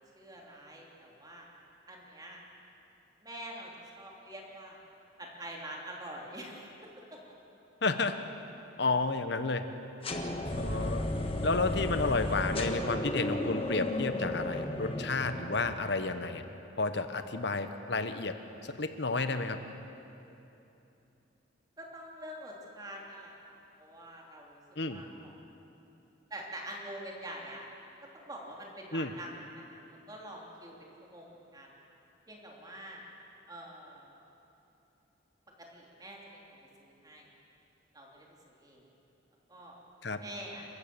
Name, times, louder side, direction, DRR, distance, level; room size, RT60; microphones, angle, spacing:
voice 1, 0.1-1.5 1.9-2.4 3.2-3.7 3.9-4.8 5.2-7.2 12.0-12.5 21.8-24.6 24.9-25.3 26.3-27.7 28.1-29.3 29.5-29.8 30.1-30.7 31.0-31.7 32.3-33.0 33.5-34.2 35.6-37.3 37.9-38.3 38.6-38.8 39.5-39.7 40.2-40.6, right 1 dB, 20° right, -2 dB, 3.2 m, -46 dB
voice 2, 7.8-8.2 8.8-9.7 10.6-11.1 11.4-16.4 16.8-19.6 24.8-25.0 28.9-29.1 40.0-40.2, left 3 dB, 60° left, 9 dB, 1.2 m, -31 dB
sound 1, 10.0-16.0, left 1 dB, 30° left, 1.5 m, -34 dB
29.5 x 15.0 x 7.0 m, 3.0 s
head